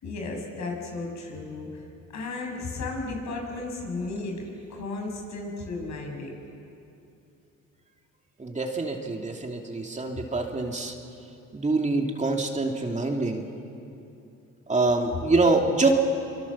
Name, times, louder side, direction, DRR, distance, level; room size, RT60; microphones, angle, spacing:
voice 1, 0.0-1.7 2.1-6.4, left 3 dB, 65° left, 1 dB, 6.0 m, -34 dB
voice 2, 8.4-10.9 11.5-13.5 14.7-15.9, right 3 dB, 25° right, 2 dB, 2.6 m, -25 dB
25.5 x 25.0 x 7.3 m, 2.7 s
cardioid pair, 90°, 30 cm